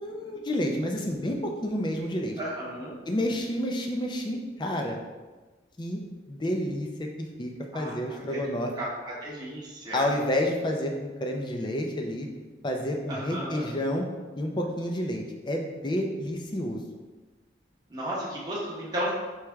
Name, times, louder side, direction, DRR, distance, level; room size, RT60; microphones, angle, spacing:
voice 1, 0.0-2.3 3.1-5.0 5.8-6.0 6.3-7.1 7.4-8.7 9.9-12.3 12.6-14.0 14.4-16.8, left 1 dB, 25° left, 2 dB, 0.5 m, -29 dB
voice 2, 2.4-3.0 7.7-8.4 8.8-10.1 13.1-13.7 17.9-19.1, right 1 dB, 20° right, -6 dB, 1.0 m, -34 dB
4.6 x 3.3 x 3.4 m, 1.3 s
head